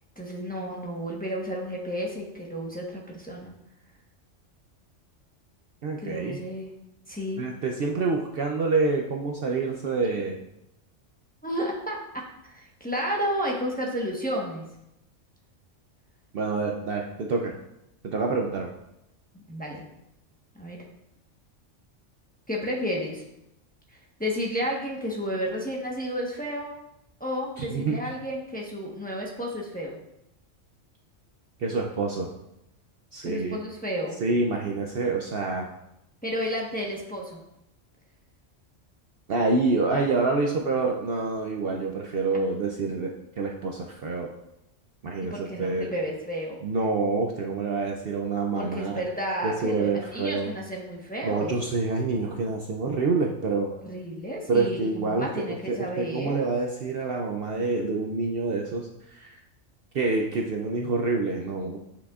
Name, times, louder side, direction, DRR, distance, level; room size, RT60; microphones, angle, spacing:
voice 1, 0.2-3.5 6.0-6.7 7.1-7.5 11.4-14.6 19.5-19.8 20.6-20.8 22.5-23.2 24.2-26.7 27.2-30.0 33.2-34.2 36.2-37.4 45.2-46.6 48.6-51.5 53.9-56.4, equal, 10° left, -3 dB, 1.0 m, -32 dB
voice 2, 5.8-6.4 7.4-10.3 16.3-17.5 18.0-18.7 27.6-28.0 31.6-32.3 33.1-33.6 34.2-35.7 39.3-44.3 45.0-45.9 46.6-49.0 49.4-50.5 51.2-53.7 54.5-59.4 59.9-61.8, right 3 dB, 55° right, 1 dB, 0.7 m, -27 dB
8.7 x 5.9 x 2.4 m, 0.85 s
omnidirectional pair, 1.3 m